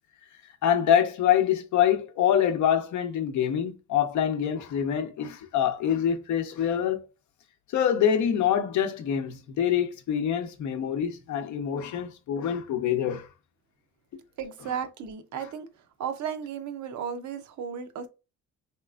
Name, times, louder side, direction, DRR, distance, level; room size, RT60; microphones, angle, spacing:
voice 1, 0.6-7.0 7.7-13.3, left 9 dB, 75° left, 0.7 m, -25 dB
voice 2, 14.4-15.7 16.0-18.1, right 7 dB, 70° right, 0.7 m, -34 dB
3.2 x 2.9 x 2.4 m
cardioid pair, 90°, 30 cm